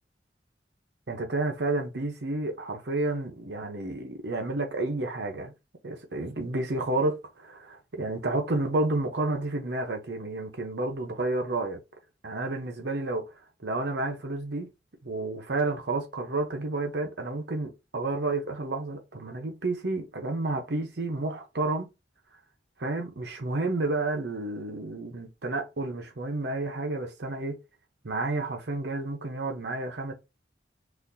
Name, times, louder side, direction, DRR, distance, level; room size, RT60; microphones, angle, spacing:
voice 1, 1.1-5.5 5.8-11.8 12.2-13.3 13.6-14.7 15.0-21.9 22.8-27.6 28.0-30.1, right 2 dB, 65° right, 0.8 m, -30 dB
4.1 x 2.5 x 2.6 m
head